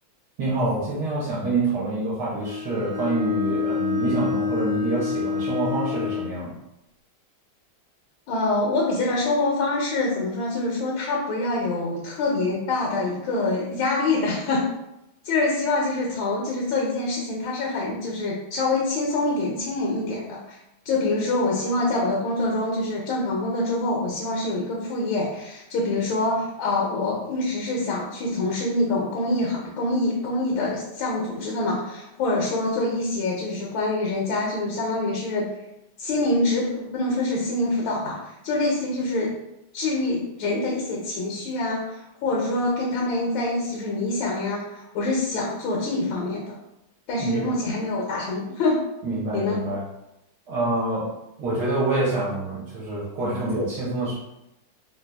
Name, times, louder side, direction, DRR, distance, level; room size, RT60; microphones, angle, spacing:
voice 1, 0.4-6.5 47.2-47.5 49.0-49.8 50.5-51.1 51.4-54.1, right 2 dB, 65° right, -6 dB, 1.1 m, -26 dB
Bowed string instrument, 2.4-6.3, left 5 dB, 10° right, 0.7 m, -27 dB
voice 2, 8.3-14.7 15.2-20.6 20.8-35.5 36.0-39.3 39.7-46.6 47.1-48.8 49.3-49.6, left 2 dB, 80° left, -3 dB, 1.4 m, -25 dB
3.2 x 2.7 x 2.2 m, 0.89 s
omnidirectional pair, 2.3 m